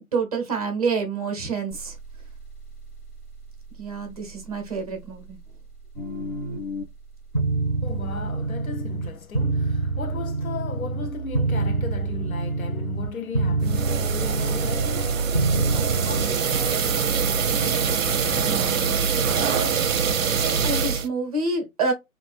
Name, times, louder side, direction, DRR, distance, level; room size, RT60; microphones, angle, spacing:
voice 1, 0.1-2.0 3.8-5.4 20.3-21.9, right 3 dB, 25° right, 0.7 m, -27 dB
sound 1, 1.7-9.5, right 5 dB, 35° left, 1.2 m, -45 dB
sound 2, 5.9-6.8 7.3-9.1 9.3-13.1 13.3-15.1 15.3-16.3, right 3 dB, 10° left, 0.8 m, -26 dB
voice 2, 7.8-19.8, left 5 dB, 75° left, 0.7 m, -37 dB
sound 3, 13.6-21.1, right 6 dB, 65° right, 0.6 m, -24 dB
2.7 x 2.5 x 2.2 m
figure-of-eight pair, 145°, 42 cm